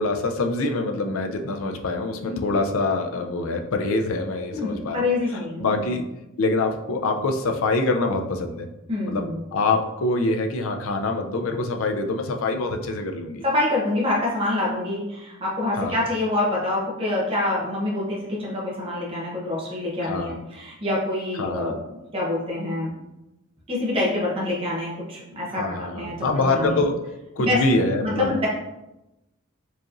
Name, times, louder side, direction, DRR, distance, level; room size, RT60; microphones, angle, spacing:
voice 1, 0.0-5.1 5.6-6.0 6.4-8.7 9.0-13.4 15.8-16.0 20.1-20.4 21.4-21.8 25.6-27.0 27.4-28.4, left 2 dB, 70° left, 5 dB, 0.4 m, -25 dB
voice 2, 4.5-5.9 8.9-9.4 13.4-21.8 22.1-22.9 23.7-26.8 27.4-27.6 28.0-28.5, left 2 dB, 25° right, -5 dB, 0.8 m, -26 dB
4.7 x 3.0 x 2.5 m, 0.96 s
head